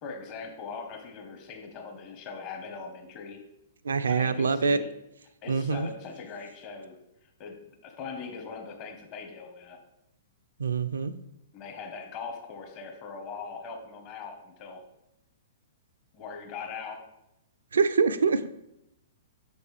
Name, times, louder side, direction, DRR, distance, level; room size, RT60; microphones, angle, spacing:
voice 1, 0.0-3.4 4.1-4.9 5.4-6.9 7.2-9.8 11.5-14.8 16.1-17.1, left 5 dB, 40° left, 4 dB, 1.1 m, -41 dB
voice 2, 3.8-4.8 5.5-5.9 10.6-11.1 17.7-18.5, right 5 dB, 80° right, 12 dB, 0.4 m, -25 dB
6.2 x 5.1 x 3.3 m, 0.84 s
hypercardioid pair, 115°, 0 cm